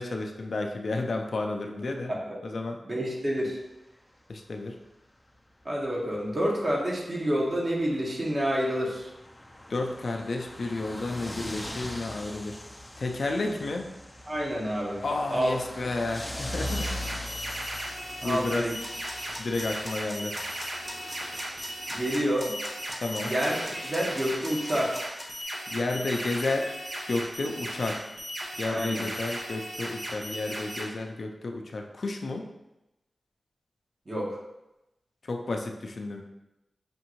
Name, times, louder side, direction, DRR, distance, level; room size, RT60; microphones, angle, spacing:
voice 1, 0.0-2.1 2.4-2.8 4.3-4.8 9.7-12.6 13.0-13.8 15.0-16.9 18.2-18.6 19.4-20.4 23.0-23.3 25.7-26.8 27.1-28.0 28.6-32.5 35.3-36.2, left 2 dB, 70° left, 3 dB, 0.4 m, -31 dB
voice 2, 2.1-2.4 2.8-3.6 5.6-9.1 13.4-13.5 14.3-15.0 15.3-15.6 18.2-18.7 21.9-22.5 23.2-25.1 28.7-29.1 34.1-34.4, equal, 50° right, -3 dB, 1.3 m, -28 dB
sound 1, 3.4-3.7 4.8-4.9 5.2-5.3 5.6-5.7 6.0-6.2 6.8-22.7, left 1 dB, 15° left, 0.5 m, -41 dB
sound 2, 16.4-30.8, equal, 70° right, 0.9 m, -37 dB
sound 3, 18.7-25.4, equal, 5° right, 0.9 m, -42 dB
5.6 x 2.6 x 3.0 m, 0.94 s
cardioid pair, 40°, 0 cm